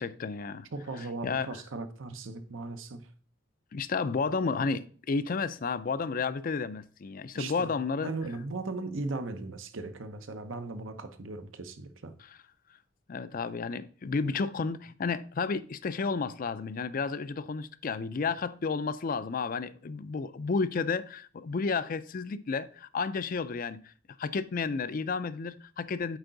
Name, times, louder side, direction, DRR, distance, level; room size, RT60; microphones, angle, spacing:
voice 1, 0.0-0.7 1.0-1.6 3.7-8.1 13.1-23.8 24.2-26.2, left 4 dB, 45° left, 0.4 m, -32 dB
voice 2, 0.7-3.1 7.3-7.7 8.0-12.1, right 3 dB, 80° right, 0.8 m, -38 dB
8.0 x 4.6 x 3.9 m
head